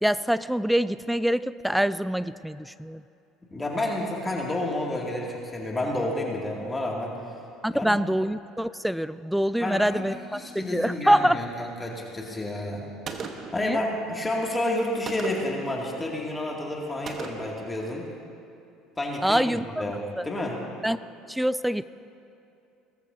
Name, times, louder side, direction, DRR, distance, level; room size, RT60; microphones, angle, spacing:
voice 1, 0.0-3.0 7.6-11.4 13.6-13.8 19.2-19.6 20.2-20.3 20.8-21.0 21.3-21.8, equal, ahead, 16 dB, 0.3 m, -25 dB
voice 2, 3.5-7.1 7.7-8.0 9.6-10.0 10.3-12.8 13.5-18.1 19.0-19.4 19.8-20.6, left 1 dB, 20° left, -2 dB, 2.4 m, -30 dB
Gunshot gunfire, 13.1-13.7 15.1-15.6 17.1-17.6, right 5 dB, 45° right, 1.2 m, -37 dB
19.5 x 14.5 x 2.7 m, 2.7 s
hypercardioid pair, 70°, 0 cm